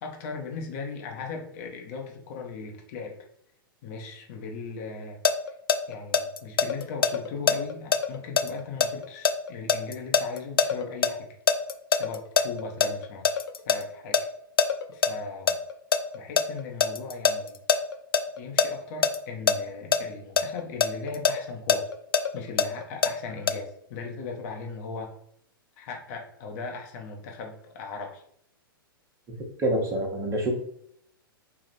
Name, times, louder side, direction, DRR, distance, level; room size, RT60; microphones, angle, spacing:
voice 1, 0.0-3.1 3.8-5.2 5.9-11.3 11.9-14.2 14.9-15.6 16.1-17.6 18.4-21.9 22.3-25.1 25.8-28.2, left 4 dB, 45° left, 1 dB, 0.9 m, -38 dB
sound 1, 5.2-11.1 11.5-13.8 14.1-14.2 14.6-15.1 15.5-18.7 19.0-19.2 19.5-19.6 19.9-20.0 20.4-23.1 23.5-23.6, left 6 dB, 80° left, 0.4 m, -22 dB
voice 2, 29.6-30.5, right 1 dB, 25° right, -1 dB, 1.2 m, -26 dB
3.3 x 2.4 x 4.2 m, 0.70 s
figure-of-eight pair, 110°, 12 cm